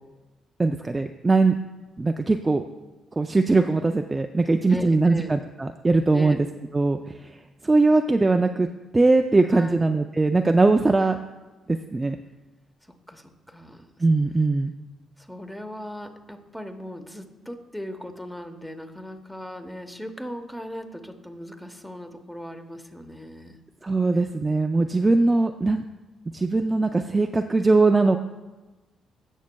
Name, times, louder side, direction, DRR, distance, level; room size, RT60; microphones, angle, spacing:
voice 1, 0.6-1.5 2.0-2.6 3.2-6.4 6.7-7.3 7.6-8.7 8.9-11.2 11.7-12.2 14.0-14.7 23.8-25.8 26.3-28.2, right 3 dB, 20° right, 5 dB, 0.4 m, -21 dB
voice 2, 4.7-5.3 6.1-6.4 9.5-9.9 13.1-13.9 15.2-23.6, equal, 5° left, 6 dB, 1.0 m, -38 dB
16.5 x 6.3 x 2.3 m, 1.2 s
cardioid pair, 90°, 0 cm